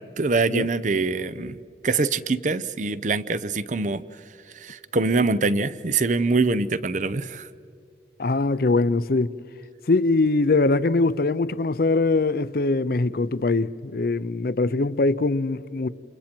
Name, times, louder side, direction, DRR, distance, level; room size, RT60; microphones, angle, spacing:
voice 1, 0.2-1.6 1.8-4.0 4.6-7.5, right 3 dB, 45° right, 0.7 m, -24 dB
voice 2, 8.2-9.4 9.9-15.9, left 3 dB, 55° left, 0.6 m, -22 dB
29.5 x 28.5 x 4.5 m
head